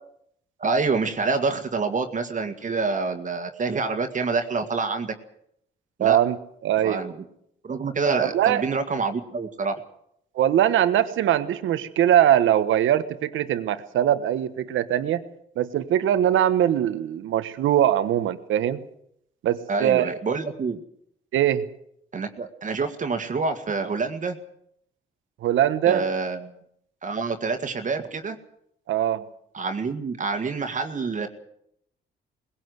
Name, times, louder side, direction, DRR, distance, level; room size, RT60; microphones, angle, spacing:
voice 1, 0.6-5.1 6.0-6.2 6.8-7.1 7.6-9.8 19.7-20.8 22.1-24.4 25.9-26.5 27.0-28.4 29.5-31.3, right 4 dB, 40° right, 6 dB, 2.0 m, -27 dB
voice 2, 6.0-6.4 6.6-7.0 8.2-8.6 10.3-15.2 15.6-18.8 19.4-20.1 21.3-21.6 25.4-26.1 28.9-29.2, right 11 dB, 80° right, 11 dB, 1.3 m, -21 dB
20.0 x 17.0 x 8.0 m, 0.72 s
cardioid pair, 90°, 20 cm